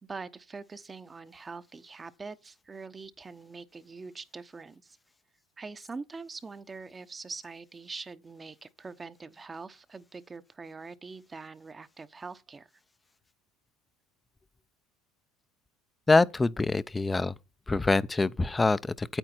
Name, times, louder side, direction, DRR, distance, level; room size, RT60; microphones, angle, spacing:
voice 1, 0.0-5.0 5.6-12.7, right 4 dB, 25° right, 0.9 m, -43 dB
voice 2, 16.1-17.3 17.7-19.2, left 3 dB, 15° left, 0.6 m, -25 dB
9.0 x 8.5 x 4.5 m
supercardioid pair, 90°, 0 cm